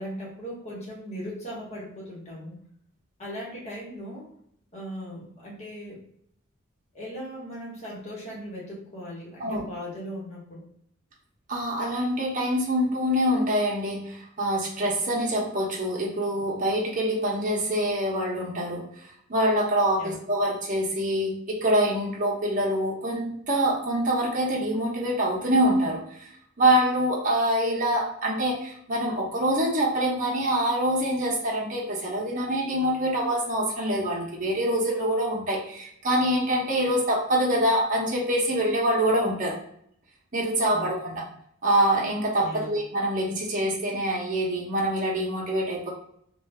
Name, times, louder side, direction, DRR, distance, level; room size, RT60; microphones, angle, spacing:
voice 1, 0.0-2.5 3.2-4.3 4.7-6.0 6.9-10.6 20.0-20.2 40.7-41.2 42.4-42.7, equal, 35° left, -5 dB, 1.2 m, -38 dB
voice 2, 11.5-26.3 26.6-39.6 40.3-41.3 41.6-45.9, right 1 dB, 40° right, -4 dB, 0.8 m, -25 dB
2.6 x 2.3 x 3.4 m, 0.70 s
head